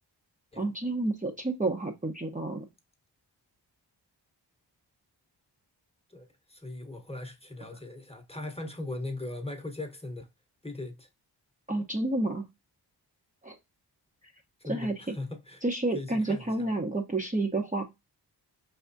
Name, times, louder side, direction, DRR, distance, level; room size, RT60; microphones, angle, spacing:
voice 1, 0.6-2.7 11.7-12.4 13.4-13.6 14.7-15.1 15.6-17.8, right 2 dB, 20° right, 0.9 m, -30 dB
voice 2, 6.1-10.3 10.6-11.1 14.6-15.6 15.9-16.7, left 2 dB, 15° left, 1.1 m, -39 dB
4.7 x 3.5 x 2.6 m
cardioid pair, 60°, 43 cm